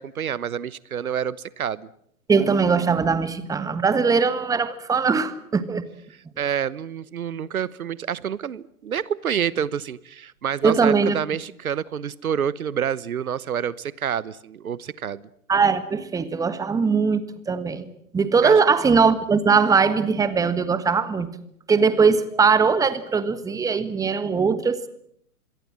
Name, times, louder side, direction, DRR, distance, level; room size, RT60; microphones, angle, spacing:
voice 1, 0.0-1.9 6.4-15.2 18.4-18.6, right 8 dB, 70° right, 20 dB, 1.1 m, -28 dB
voice 2, 2.3-5.8 10.6-11.2 15.5-17.9 18.1-21.3 21.7-24.9, right 5 dB, 10° right, 13 dB, 1.4 m, -20 dB
26.0 x 22.5 x 7.5 m, 0.70 s
figure-of-eight pair, 120°, 44 cm